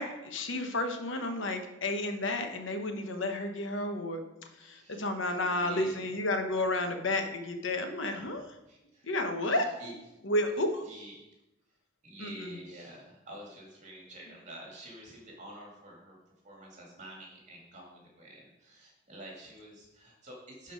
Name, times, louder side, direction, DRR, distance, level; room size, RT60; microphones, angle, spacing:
voice 1, 0.0-4.2 4.6-8.5 9.0-9.6 10.2-10.8 12.2-12.6, left 2 dB, 80° left, 6 dB, 1.0 m, -31 dB
voice 2, 4.5-6.2 8.2-8.3 8.7-9.1 9.4-9.9 10.8-11.2 12.0-16.2 16.4-20.7, right 1 dB, 35° right, -2 dB, 2.4 m, -48 dB
11.5 x 4.5 x 5.1 m, 0.94 s
head